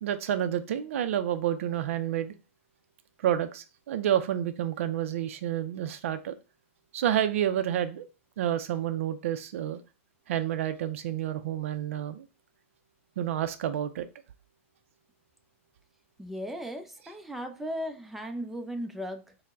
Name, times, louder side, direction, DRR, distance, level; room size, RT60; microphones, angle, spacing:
voice 1, 0.0-2.3 3.2-6.4 6.9-8.1 8.4-9.8 10.3-12.2 13.2-14.1, right 11 dB, 70° right, 0.4 m, -29 dB
voice 2, 16.2-19.4, equal, 5° right, 0.5 m, -36 dB
4.4 x 2.1 x 3.5 m
hypercardioid pair, 125°, 7 cm